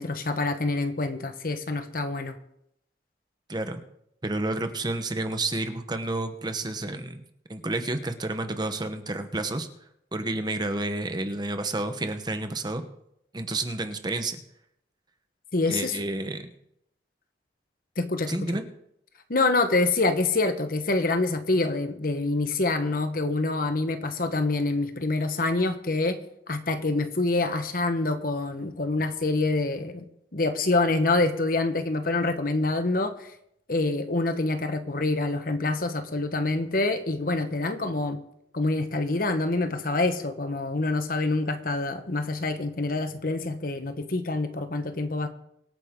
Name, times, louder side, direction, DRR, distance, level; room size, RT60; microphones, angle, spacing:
voice 1, 0.0-2.4 15.5-16.0 18.0-18.4 19.3-26.2 26.5-30.0 30.3-33.3 33.7-38.2 38.5-45.3, left 2 dB, 55° left, 9 dB, 1.2 m, -26 dB
voice 2, 3.5-3.8 4.2-9.7 10.1-12.8 13.3-14.4 15.7-16.5 18.3-18.6, right 2 dB, 25° right, 8 dB, 1.0 m, -30 dB
24.0 x 9.1 x 3.7 m, 0.76 s
head